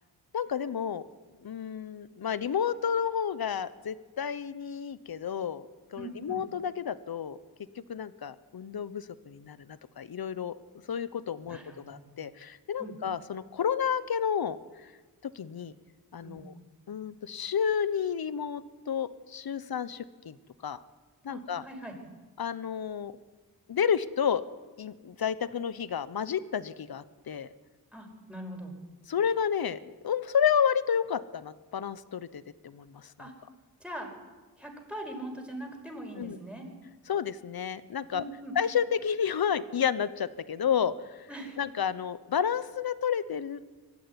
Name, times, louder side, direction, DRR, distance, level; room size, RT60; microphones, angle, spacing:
voice 1, 0.3-1.0 1.4-5.6 5.9-7.4 7.7-10.5 10.9-11.6 11.9-14.9 15.2-15.7 16.1-16.5 16.9-20.4 20.6-20.8 21.2-21.6 22.4-23.1 23.7-24.4 24.8-27.5 29.1-29.8 30.0-33.1 36.2-36.4 37.1-38.2 38.5-41.3 41.6-43.7, left 8 dB, 65° left, 15 dB, 1.1 m, -31 dB
voice 2, 6.0-6.4 11.5-12.0 12.8-13.0 16.2-16.4 21.3-21.9 27.9-28.7 33.2-33.3 33.8-34.1 34.6-36.7 38.1-38.5 41.3-41.6, right 1 dB, 5° right, 1 dB, 5.9 m, -41 dB
24.0 x 13.5 x 9.8 m, 1.3 s
wide cardioid pair, 85°, 39 cm